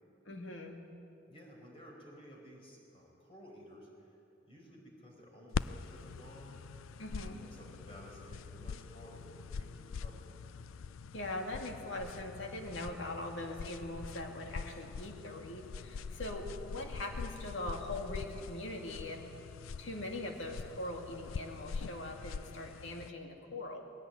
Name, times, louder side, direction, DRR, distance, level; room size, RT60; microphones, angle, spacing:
voice 1, 0.3-0.8 7.0-7.4 11.1-19.2 19.8-23.8, left 1 dB, 65° left, 2 dB, 2.4 m, -41 dB
voice 2, 1.3-4.1 4.5-6.6 7.3-10.3 16.1-16.2, equal, 30° left, -1 dB, 4.9 m, -54 dB
sound 1, 5.5-23.1, left 5 dB, 85° left, 0.4 m, -44 dB
20.5 x 16.5 x 9.0 m, 2.8 s
head